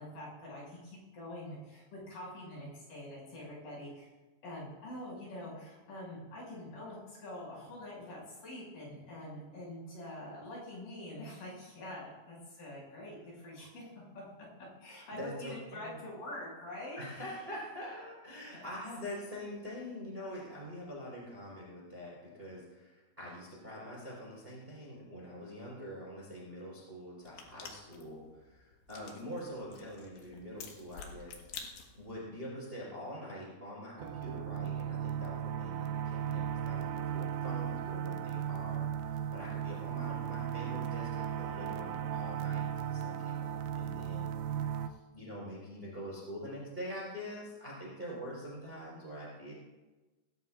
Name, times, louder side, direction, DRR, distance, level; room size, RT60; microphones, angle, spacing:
voice 1, 0.0-4.1 4.4-14.2 14.8-17.4, left 1 dB, 45° left, -5 dB, 7.9 m, -45 dB
voice 2, 15.1-16.0 17.0-31.6 32.0-49.5, equal, 10° right, -4 dB, 3.8 m, -45 dB
sound 1, 27.2-32.2, left 6 dB, 65° left, 3.5 m, -50 dB
sound 2, 34.0-44.9, right 9 dB, 80° right, 3.0 m, -36 dB
20.0 x 17.5 x 2.5 m, 1.2 s
omnidirectional pair, 6.0 m